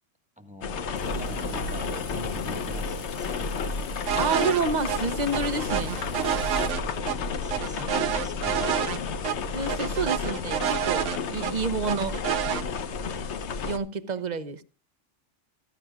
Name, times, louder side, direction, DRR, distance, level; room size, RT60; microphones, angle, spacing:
voice 1, 0.4-3.5 6.6-8.9, equal, 5° right, 1.5 m, -44 dB
sound 1, 0.6-13.8, left 5 dB, 70° left, 1.1 m, -32 dB
sound 2, 1.0-6.7, equal, 50° left, 1.3 m, -41 dB
sound 3, 4.1-4.6 4.9-5.0 5.3-7.2 7.5-9.0 9.2-9.4 9.7-11.5 11.9-12.6, right 10 dB, 85° right, 1.1 m, -28 dB
voice 2, 4.2-6.0 9.5-12.2 13.6-14.6, right 4 dB, 40° right, 0.8 m, -29 dB
16.0 x 14.0 x 2.4 m
omnidirectional pair, 1.2 m